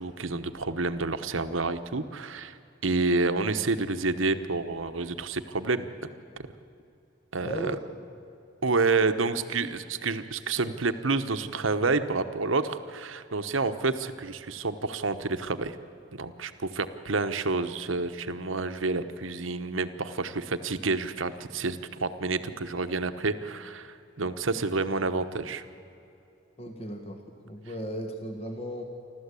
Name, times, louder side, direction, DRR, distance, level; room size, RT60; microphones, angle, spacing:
voice 1, 0.0-2.6 2.8-5.9 7.3-7.8 8.6-15.8 16.1-25.6, right 3 dB, 80° right, 10 dB, 1.1 m, -29 dB
voice 2, 7.4-7.8 26.6-27.2 27.4-28.8, equal, 30° left, 4 dB, 1.5 m, -36 dB
28.5 x 13.0 x 8.4 m, 2.8 s
head